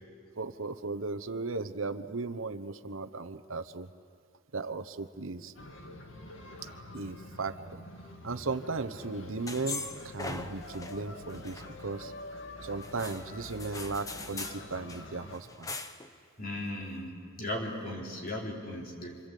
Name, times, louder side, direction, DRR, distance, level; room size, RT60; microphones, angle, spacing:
voice 1, 0.4-3.9 4.5-5.5 6.9-7.8 8.2-12.1 12.6-15.7, right 3 dB, 85° right, 8 dB, 1.0 m, -36 dB
sound 1, 5.6-15.4, left 1 dB, 75° left, 2.2 m, -46 dB
sound 2, 9.5-11.0 11.3-12.2 12.8-14.6 14.9-15.0 15.3-16.1, left 3 dB, 15° left, 1.0 m, -41 dB
voice 2, 16.4-19.2, left 1 dB, 45° left, -2 dB, 4.2 m, -37 dB
26.5 x 26.0 x 8.4 m, 2.2 s
head